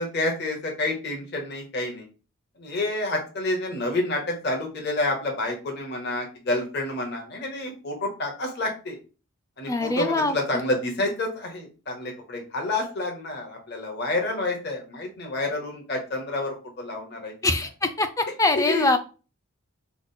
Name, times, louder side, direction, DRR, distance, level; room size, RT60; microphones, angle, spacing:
voice 1, 0.0-2.1 2.6-9.0 9.6-17.3 18.5-18.9, left 2 dB, 50° left, 2 dB, 1.1 m, -29 dB
voice 2, 9.7-10.4 17.4-19.0, left 2 dB, 15° left, 8 dB, 0.5 m, -23 dB
5.8 x 2.1 x 4.1 m, 0.34 s
head